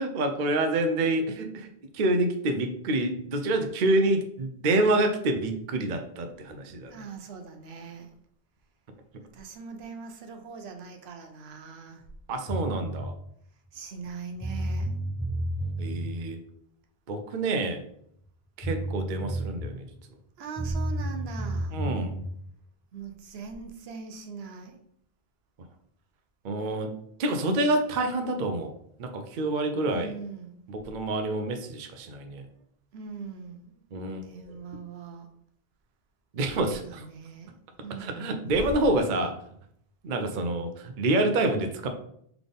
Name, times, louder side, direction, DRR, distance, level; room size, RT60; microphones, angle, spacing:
voice 1, 0.0-1.7 1.9-6.9 12.3-13.1 15.8-16.4 17.1-17.8 18.6-19.9 21.7-22.2 26.4-26.9 27.2-28.7 29.0-30.1 30.7-32.5 33.9-34.6 36.3-37.1 38.0-39.4 40.0-41.9, right 2 dB, 55° right, 0.7 m, -27 dB
voice 2, 6.9-8.1 9.3-12.0 13.7-14.9 20.4-21.8 22.9-24.8 29.9-30.5 32.9-33.7 34.2-35.3 36.6-37.6 37.8-38.2, right 5 dB, 80° right, 0.9 m, -41 dB
sound 1, 12.5-13.0 14.1-14.2 14.4-16.1 18.2-18.3 18.6-19.8 20.6-22.2, right 1 dB, 30° left, 1.4 m, -31 dB
4.0 x 3.4 x 3.5 m
omnidirectional pair, 1.0 m